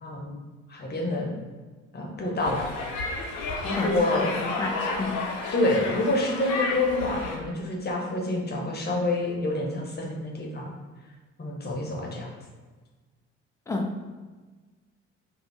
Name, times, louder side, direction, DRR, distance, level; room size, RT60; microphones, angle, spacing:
voice 1, 0.0-0.4 0.7-1.4 1.9-2.7 3.6-4.3 5.5-10.7 11.4-12.3, left 2 dB, 25° left, -1 dB, 0.8 m, -27 dB
sound 1, 2.4-7.4, left 3 dB, 60° left, 0.6 m, -32 dB
voice 2, 3.7-5.2 13.7-14.0, left 2 dB, 10° left, 2 dB, 0.4 m, -31 dB
2.5 x 2.4 x 3.3 m, 1.3 s
figure-of-eight pair, 45°, 36 cm